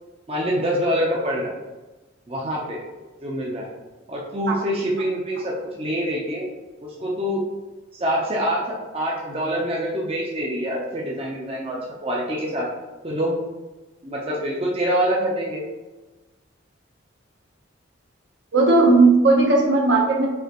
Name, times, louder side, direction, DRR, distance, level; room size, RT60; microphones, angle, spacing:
voice 1, 0.3-1.5 2.3-2.8 3.2-3.7 4.1-6.4 6.8-7.4 7.9-8.6 8.9-12.7 13.0-13.4 14.0-15.6, equal, 30° right, -3 dB, 0.6 m, -25 dB
voice 2, 18.5-20.3, right 3 dB, 65° right, 0 dB, 0.8 m, -16 dB
5.5 x 2.9 x 2.9 m, 1.2 s
head